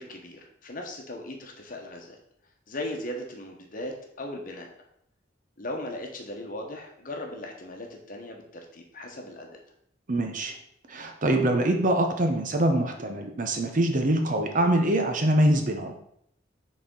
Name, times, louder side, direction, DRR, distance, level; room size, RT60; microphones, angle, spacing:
voice 1, 0.0-2.2 2.7-4.7 5.6-9.6, left 1 dB, 45° left, 2 dB, 1.1 m, -38 dB
voice 2, 10.1-10.5 10.9-15.9, right 1 dB, 45° right, 4 dB, 0.7 m, -24 dB
6.5 x 4.1 x 3.8 m, 0.71 s
head